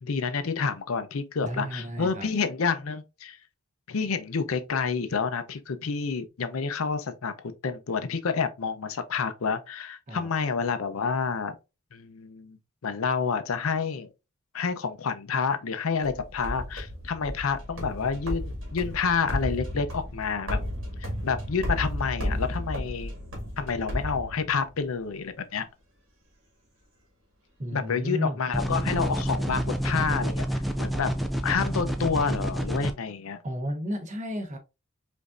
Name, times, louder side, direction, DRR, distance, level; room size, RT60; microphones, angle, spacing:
voice 1, 0.0-3.4 3.9-11.5 11.9-12.6 12.8-14.1 14.5-20.6 21.0-23.1 23.6-25.7 27.7-31.2 31.4-33.4, left 5 dB, 75° left, 0.5 m, -29 dB
voice 2, 1.4-2.3 10.1-10.3 27.6-28.4 33.4-34.6, equal, 35° right, 1.0 m, -32 dB
sound 1, 16.0-24.8, equal, 60° right, 1.9 m, -33 dB
sound 2, 28.5-32.9, equal, ahead, 0.3 m, -28 dB
5.1 x 2.6 x 2.4 m
head